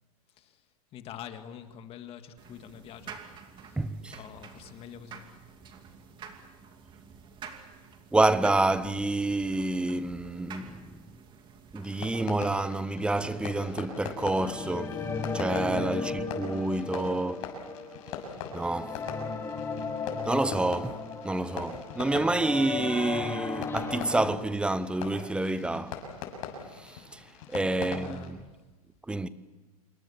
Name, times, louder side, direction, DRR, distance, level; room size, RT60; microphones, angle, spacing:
voice 1, 0.3-0.6 0.9-3.2 3.6-3.8 4.1-5.3 15.9-16.2 27.8-28.5, left 10 dB, 30° left, 1.8 m, -46 dB
sound 1, 2.4-12.3, right 6 dB, 25° right, 2.5 m, -49 dB
voice 2, 3.8-4.2 8.1-10.9 11.7-15.0 15.3-17.5 18.5-19.0 20.3-26.0 26.8-27.2 27.5-28.4 29.1-29.3, right 2 dB, 5° right, 0.8 m, -28 dB
Fireworks, 11.8-28.3, left 6 dB, 55° left, 6.6 m, -42 dB
sound 2, 13.9-24.4, left 4 dB, 15° left, 2.0 m, -36 dB
27.0 x 23.5 x 7.1 m
supercardioid pair, 140°, 19 cm